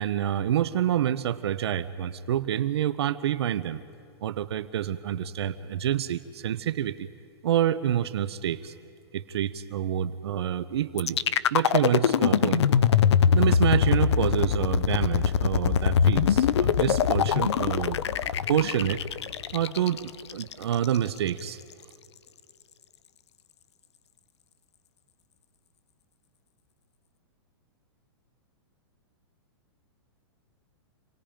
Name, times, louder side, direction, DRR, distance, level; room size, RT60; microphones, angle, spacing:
voice 1, 0.0-3.8 4.2-7.1 7.4-8.7 9.1-11.2 11.5-12.6 13.3-18.0 18.5-19.0 19.5-21.6, right 10 dB, 70° right, 12 dB, 0.8 m, -27 dB
sound 1, 11.0-21.0, left 7 dB, 85° left, 0.7 m, -23 dB
27.5 x 19.5 x 5.1 m, 2.5 s
hypercardioid pair, 160°, 14 cm